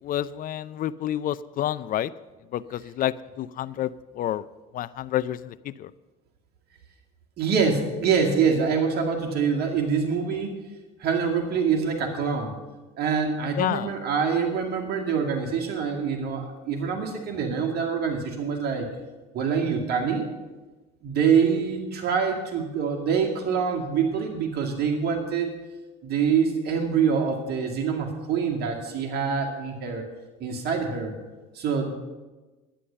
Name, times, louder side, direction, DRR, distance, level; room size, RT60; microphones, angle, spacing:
voice 1, 0.0-2.1 2.5-4.5 4.7-5.9 13.6-13.9, left 12 dB, 45° left, 17 dB, 0.4 m, -29 dB
voice 2, 7.4-10.5 11.0-12.5 13.0-18.9 19.3-20.3 21.0-25.5 26.0-30.0 30.4-31.1 31.5-31.9, right 6 dB, 55° right, 2 dB, 2.2 m, -25 dB
11.5 x 9.7 x 6.8 m, 1.2 s
supercardioid pair, 80°, 19 cm